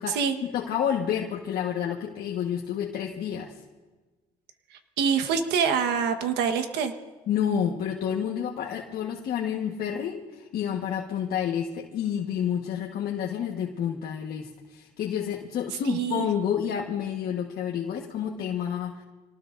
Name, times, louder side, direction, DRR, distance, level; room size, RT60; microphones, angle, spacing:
voice 1, 0.5-3.5 7.3-19.0, left 8 dB, 65° left, 0 dB, 1.4 m, -29 dB
voice 2, 5.0-6.9 15.8-16.3, right 6 dB, 90° right, 8 dB, 1.4 m, -25 dB
26.5 x 19.0 x 2.6 m, 1.3 s
cardioid pair, 110°, 17 cm